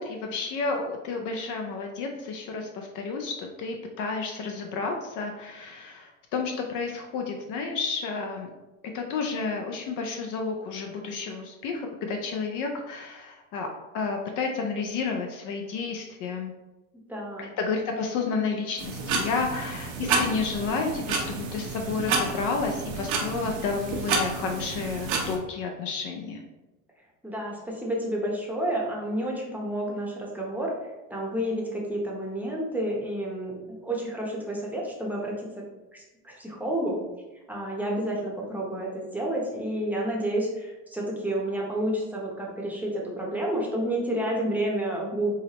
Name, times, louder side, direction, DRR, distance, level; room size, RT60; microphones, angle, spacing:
voice 1, 0.0-8.5 8.9-13.7 13.9-16.5 17.4-26.4, left 4 dB, 50° left, 3 dB, 0.5 m, -31 dB
voice 2, 17.1-17.5 27.2-30.7 31.1-35.6 35.9-37.0 37.5-45.3, right 1 dB, 5° right, -3 dB, 0.7 m, -30 dB
sound 1, 18.8-25.4, right 4 dB, 80° right, 0.9 m, -30 dB
4.8 x 2.0 x 2.9 m, 1.1 s
supercardioid pair, 100°, 41 cm